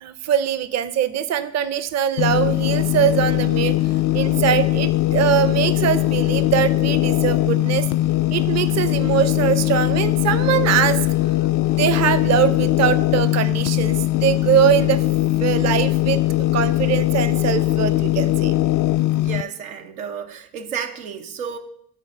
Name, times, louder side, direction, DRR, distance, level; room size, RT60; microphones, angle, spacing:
voice 1, 0.0-3.8 4.1-7.9 8.3-11.0 11.7-15.0 15.4-16.2 16.5-18.6, right 9 dB, 40° right, 0.6 m, -21 dB
sound 1, 2.2-19.4, left 16 dB, 50° left, 0.4 m, -20 dB
voice 2, 19.2-21.6, right 7 dB, 85° right, 0.7 m, -31 dB
12.0 x 4.2 x 3.6 m
hypercardioid pair, 50°, 41 cm